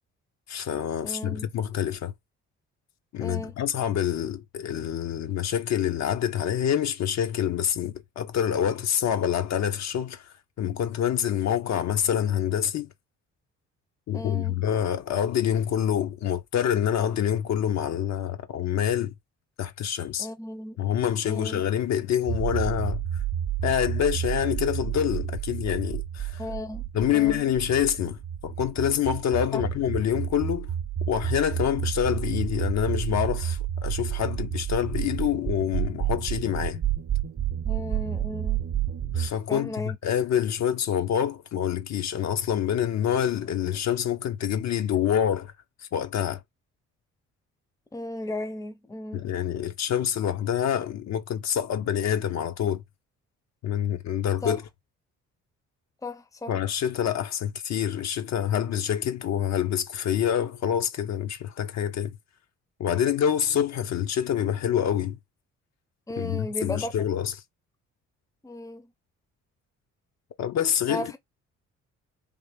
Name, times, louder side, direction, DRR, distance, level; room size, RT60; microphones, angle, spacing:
voice 1, 0.5-2.1 3.1-12.9 14.1-19.1 19.6-20.3 20.8-23.0 23.6-26.4 26.9-30.7 31.1-36.8 39.1-45.5 45.9-46.4 49.1-52.8 53.6-54.6 56.5-62.2 62.8-65.2 66.2-67.3 70.4-71.2, left 9 dB, 60° left, 0.7 m, -26 dB
voice 2, 1.0-1.5 3.2-3.5 14.1-14.6 20.2-20.8 21.2-21.6 26.4-26.8 27.1-27.5 29.5-29.6 37.6-38.6 39.5-40.0 47.9-49.2 54.4-54.6 56.0-56.6 66.1-66.9 68.4-68.9 70.9-71.2, left 1 dB, 10° left, 0.6 m, -35 dB
sound 1, 22.3-39.3, right 10 dB, 40° right, 0.7 m, -30 dB
3.4 x 2.5 x 3.3 m
cardioid pair, 90°, 30 cm